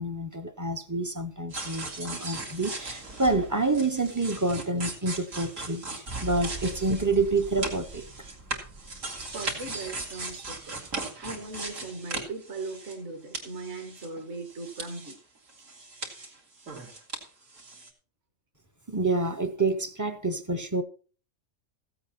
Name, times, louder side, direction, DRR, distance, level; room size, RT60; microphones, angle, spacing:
voice 1, 0.0-8.1 18.9-20.8, right 3 dB, 20° right, 0.5 m, -28 dB
sound 1, 1.5-13.1 13.3-15.2 15.5-17.2 17.5-17.9, right 2 dB, 75° right, 2.7 m, -38 dB
voice 2, 9.3-10.8 11.2-15.2, right 3 dB, 55° right, 1.7 m, -39 dB
15.0 x 8.0 x 4.2 m
omnidirectional pair, 1.4 m